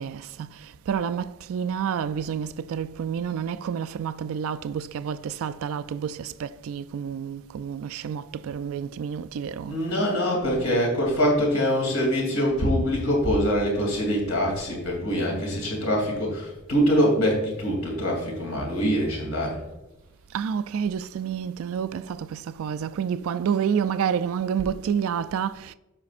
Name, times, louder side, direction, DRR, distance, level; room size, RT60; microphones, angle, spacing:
voice 1, 0.0-9.8 20.3-25.7, right 7 dB, 65° right, 0.3 m, -29 dB
voice 2, 9.7-19.6, equal, 70° left, 2.8 m, -24 dB
14.5 x 5.1 x 2.5 m
head